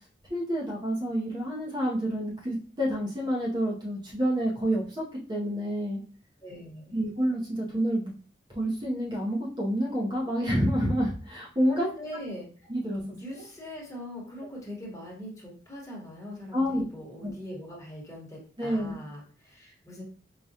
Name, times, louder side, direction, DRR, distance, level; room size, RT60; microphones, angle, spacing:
voice 1, 0.3-6.0 6.9-8.1 8.5-11.9 12.7-13.0 13.4-13.5 16.5-16.8 17.2-17.3 18.6-19.0, equal, 25° right, -3 dB, 0.7 m, -28 dB
voice 2, 6.4-6.9 11.7-12.7 13.0-20.0, left 1 dB, 15° left, -3 dB, 1.1 m, -42 dB
4.8 x 2.2 x 2.7 m, 0.41 s
head